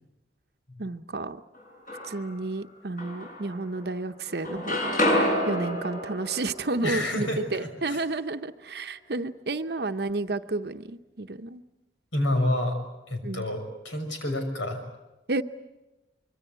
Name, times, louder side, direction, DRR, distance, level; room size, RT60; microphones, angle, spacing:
voice 1, 0.8-1.4 2.0-5.0 5.5-11.6 13.2-13.4 15.3-15.4, right 2 dB, 55° right, 8 dB, 0.8 m, -31 dB
sound 1, 1.5-2.4 3.0-4.0 4.3-8.2, equal, 45° left, 6.8 m, -30 dB
voice 2, 6.8-8.0 12.1-12.8 13.1-14.8, left 1 dB, 90° left, 5 dB, 6.2 m, -29 dB
25.0 x 23.5 x 8.1 m, 1.0 s
head